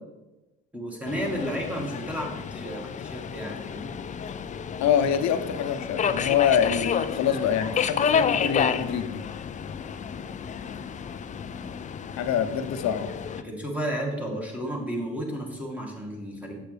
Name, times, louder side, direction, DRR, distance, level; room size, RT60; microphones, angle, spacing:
voice 1, 0.7-3.9 13.4-16.6, equal, 5° right, -1 dB, 1.7 m, -32 dB
Subway metro underground, 1.1-13.4, left 7 dB, 25° left, 0.3 m, -30 dB
voice 2, 4.8-9.2 12.2-13.1, left 8 dB, 60° left, 9 dB, 0.7 m, -25 dB
7.7 x 6.6 x 3.4 m, 1.0 s
cardioid pair, 105°, 31 cm